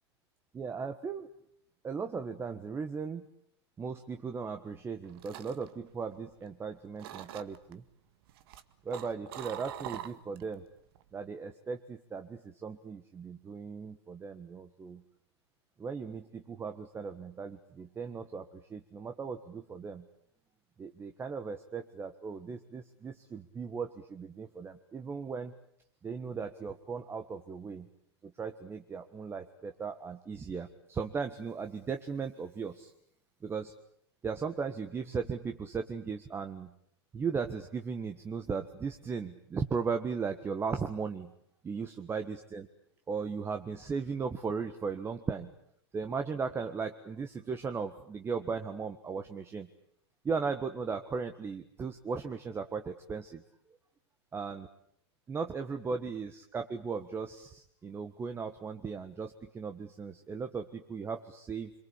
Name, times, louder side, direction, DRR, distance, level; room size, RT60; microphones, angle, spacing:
voice 1, 0.5-1.3 1.8-3.2 3.8-7.8 8.8-10.6 11.1-15.0 15.8-20.0 20.8-25.5 26.0-27.9 28.2-32.9 33.4-33.7 34.2-36.7 37.1-41.3 41.6-42.7 43.1-45.5 45.9-49.7 50.2-53.4 54.3-54.7 55.3-61.7, right 5 dB, 15° right, 7 dB, 1.5 m, -37 dB
sound 1, 4.8-6.6 7.0-7.7 8.3-10.5 10.9-11.2, right 12 dB, 60° right, 1.8 m, -44 dB
26.5 x 23.0 x 8.5 m, 0.70 s
hypercardioid pair, 125°, 14 cm